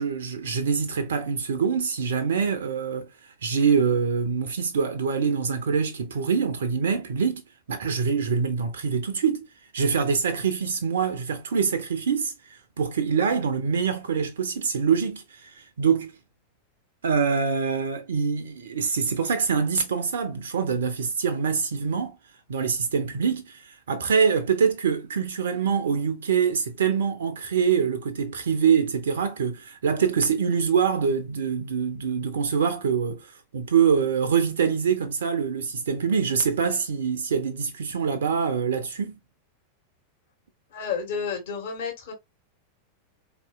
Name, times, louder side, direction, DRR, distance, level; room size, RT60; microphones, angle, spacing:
voice 1, 0.0-3.1 3.4-9.5 9.7-16.1 17.0-22.2 22.5-39.2, right 6 dB, 65° right, 0.5 m, -25 dB
voice 2, 40.7-42.1, left 6 dB, 55° left, 1.5 m, -31 dB
4.2 x 2.9 x 2.3 m
figure-of-eight pair, 90°, 0 cm